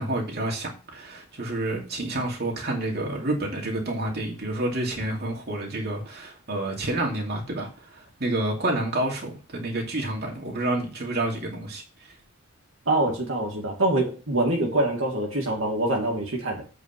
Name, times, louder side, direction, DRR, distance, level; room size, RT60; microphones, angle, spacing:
voice 1, 0.0-12.2, right 1 dB, 50° right, 2.6 m, -29 dB
voice 2, 12.9-16.6, right 1 dB, 75° right, 2.3 m, -25 dB
8.3 x 4.9 x 5.9 m
head